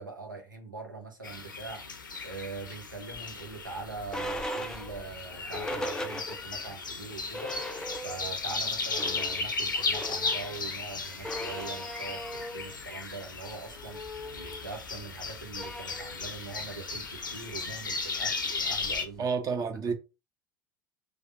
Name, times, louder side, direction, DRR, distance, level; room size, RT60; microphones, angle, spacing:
voice 1, 0.0-1.9 2.2-7.6 8.0-14.0 14.3-19.3 19.9-20.0, right 4 dB, 90° right, 0.9 m, -42 dB
sound 1, 1.2-19.0, left 4 dB, 85° left, 0.6 m, -36 dB
sound 2, 3.1-6.7 7.1-7.2 7.3-8.4 8.7-19.2, left 1 dB, 5° left, 0.5 m, -40 dB
voice 2, 19.2-19.9, right 5 dB, 35° right, 0.8 m, -29 dB
3.4 x 2.4 x 4.0 m
figure-of-eight pair, 70°, 10 cm